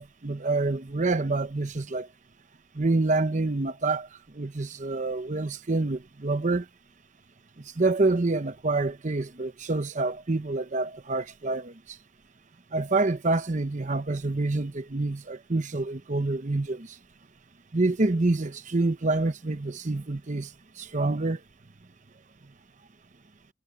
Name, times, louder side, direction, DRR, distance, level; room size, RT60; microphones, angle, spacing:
voice 1, 0.0-2.1 2.7-4.1 4.3-6.7 7.6-12.0 12.7-17.0 17.7-20.5 20.8-21.4, right 2 dB, 40° right, 0.8 m, -27 dB
head